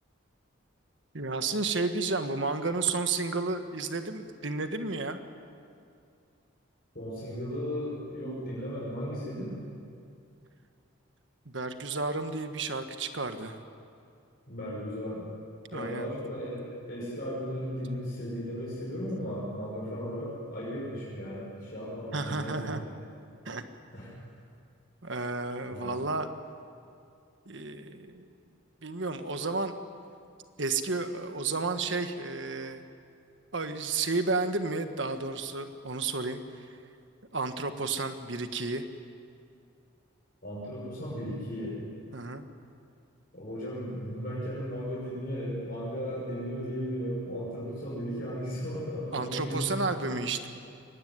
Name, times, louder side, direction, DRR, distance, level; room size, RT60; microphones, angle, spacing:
voice 1, 1.1-5.2 11.4-13.6 15.7-16.1 22.1-22.8 23.4-23.6 25.0-26.3 27.4-28.3 28.8-29.7 30.6-32.8 33.5-36.7 37.3-38.8 42.1-42.4 49.1-50.5, right 3 dB, 65° right, 8 dB, 1.5 m, -32 dB
voice 2, 6.9-9.5 14.5-15.2 15.7-22.9 23.9-24.1 25.7-26.0 40.4-41.8 43.3-50.1, equal, 45° left, -6 dB, 6.0 m, -36 dB
23.5 x 18.0 x 9.6 m, 2.4 s
head